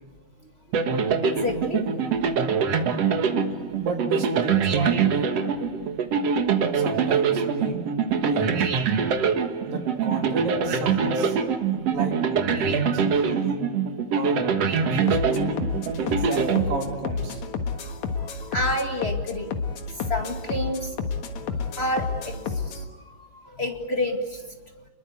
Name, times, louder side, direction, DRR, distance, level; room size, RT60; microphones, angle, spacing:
sound 1, 0.7-17.3, right 6 dB, 55° right, 2.3 m, -24 dB
voice 1, 1.2-2.1 3.6-3.7 5.4-5.6 17.9-19.6 19.9-21.0 21.3-24.9, left 1 dB, 25° left, 3 dB, 1.8 m, -30 dB
voice 2, 3.8-5.3 6.7-7.8 8.2-8.7 9.7-11.4 11.9-12.1 12.6-13.7 14.1-15.5 16.0-17.4, right 2 dB, 85° right, 2 dB, 4.7 m, -32 dB
sound 2, 15.1-22.8, left 5 dB, 65° left, 2.8 m, -30 dB
30.0 x 22.0 x 8.3 m, 1.2 s
omnidirectional pair, 3.9 m